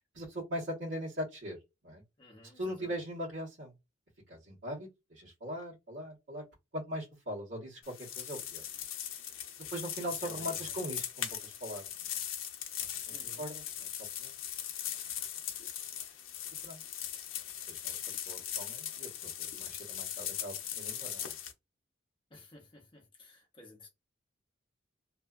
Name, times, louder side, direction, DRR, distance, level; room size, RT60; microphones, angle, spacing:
voice 1, 0.1-1.6 1.8-2.0 2.6-3.7 4.3-6.4 6.7-7.8 8.1-8.6 9.7-11.8 13.0-13.9 14.2-14.3 16.6-16.8 17.7-21.3, equal, 70° right, 1.2 m, -40 dB
voice 2, 2.2-3.0 9.6-9.7 10.0-10.7 13.1-13.5 22.3-23.9, left 3 dB, 25° left, 0.7 m, -52 dB
sound 1, 7.8-21.5, left 10 dB, 90° left, 0.6 m, -40 dB
2.6 x 2.3 x 2.3 m
head